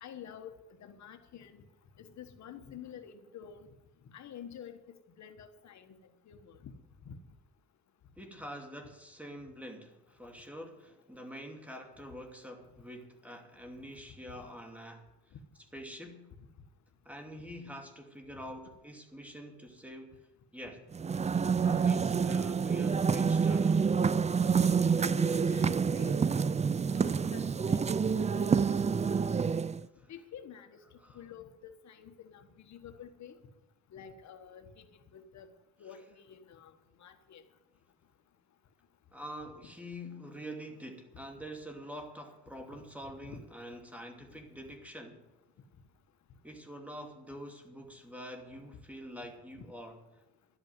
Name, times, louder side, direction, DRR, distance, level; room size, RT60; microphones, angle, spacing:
voice 1, 0.0-0.5 0.8-1.6 2.0-3.7 4.1-4.8 5.2-6.0 6.3-6.7 7.1-7.2 22.1-22.2 25.0-26.2 26.9-28.1 28.3-29.3 30.1-30.8 31.1-33.4 33.9-34.9 35.1-35.5 35.8-36.7 37.0-37.4 43.2-43.4 49.6-49.7, left 8 dB, 65° left, 7 dB, 1.3 m, -49 dB
voice 2, 8.2-15.4 15.7-16.3 17.0-20.2 20.5-20.9 21.6-23.8 29.9-30.1 31.0-31.2 39.1-45.3 46.4-50.0, equal, 5° right, 3 dB, 2.6 m, -46 dB
sound 1, 20.9-29.9, right 6 dB, 25° right, 0.4 m, -28 dB
12.0 x 8.7 x 9.3 m, 0.98 s
cardioid pair, 90°, 30 cm